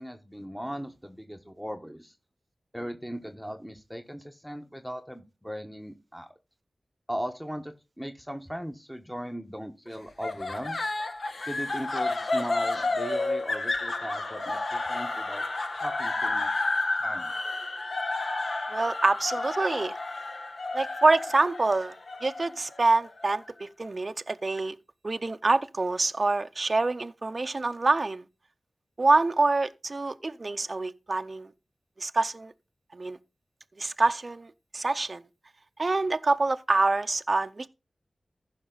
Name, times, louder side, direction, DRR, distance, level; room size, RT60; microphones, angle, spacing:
voice 1, 0.0-2.1 2.7-6.3 7.1-10.8 11.4-15.4 15.8-16.6 17.0-17.3, equal, 5° left, 1.1 m, -38 dB
sound 1, 10.2-23.4, left 2 dB, 75° left, 1.2 m, -31 dB
voice 2, 18.7-19.9 20.7-21.9 22.2-24.7 25.0-28.2 29.0-31.5 32.0-32.5 32.9-33.2 33.8-35.2 35.8-37.7, right 3 dB, 50° right, 0.5 m, -26 dB
14.5 x 5.9 x 3.9 m
wide cardioid pair, 55°, 0 cm